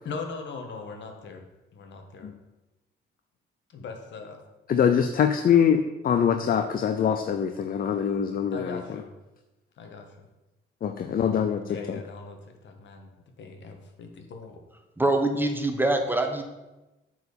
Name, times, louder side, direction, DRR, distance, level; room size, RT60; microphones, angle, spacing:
voice 1, 0.0-1.4 1.7-2.3 3.7-4.4 8.5-9.1 9.8-10.1 11.7-13.1 13.4-14.6, left 4 dB, 70° left, 4 dB, 1.5 m, -40 dB
voice 2, 4.7-9.0 10.8-12.0, left 8 dB, 45° left, 7 dB, 0.6 m, -24 dB
voice 3, 15.0-16.4, right 2 dB, 10° right, 5 dB, 1.1 m, -24 dB
8.2 x 4.7 x 6.9 m, 1.0 s
cardioid pair, 90°, 20 cm